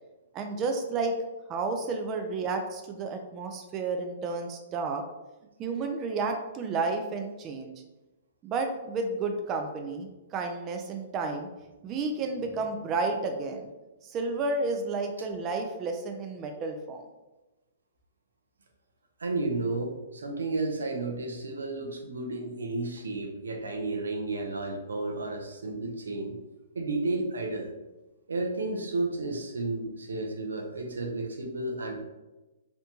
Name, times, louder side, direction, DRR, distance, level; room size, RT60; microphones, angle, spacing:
voice 1, 0.3-1.1 1.5-5.0 5.6-7.7 8.4-11.5 11.8-13.7 14.0-17.0, right 3 dB, 30° right, 4 dB, 0.3 m, -31 dB
voice 2, 19.2-26.4 26.7-27.7 28.3-32.0, right 2 dB, 85° right, 2 dB, 0.5 m, -32 dB
2.7 x 2.1 x 2.8 m, 1.1 s
hypercardioid pair, 130°, 0 cm